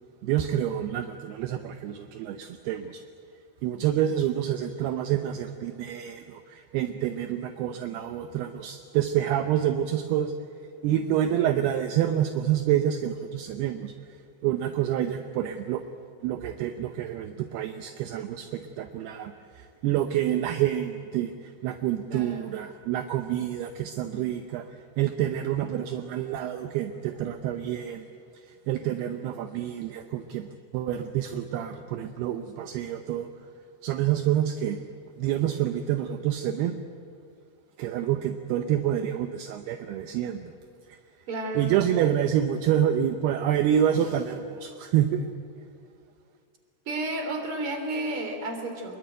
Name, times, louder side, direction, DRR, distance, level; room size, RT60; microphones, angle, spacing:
voice 1, 0.2-3.0 3.6-10.3 10.8-13.9 14.4-15.8 16.2-28.1 28.4-30.5 30.7-33.3 33.8-34.8 35.2-36.8 37.8-40.5 40.9-41.0 41.5-45.3, right 10 dB, 75° right, 7 dB, 2.7 m, -27 dB
voice 2, 22.1-22.4 41.3-41.7 46.9-49.0, right 2 dB, 35° right, 5 dB, 3.7 m, -32 dB
25.5 x 22.0 x 9.2 m, 2.3 s
omnidirectional pair, 5.0 m